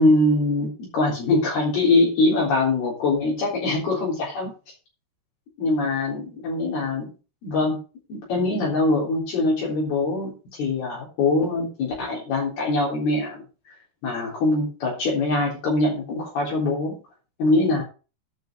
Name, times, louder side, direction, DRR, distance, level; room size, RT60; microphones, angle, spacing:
voice 1, 0.0-4.5 5.6-7.1 7.4-7.8 8.1-13.4 14.0-17.0 17.4-17.8, left 2 dB, 65° left, -5 dB, 5.6 m, -23 dB
12.0 x 5.5 x 6.1 m, 0.34 s
omnidirectional pair, 5.0 m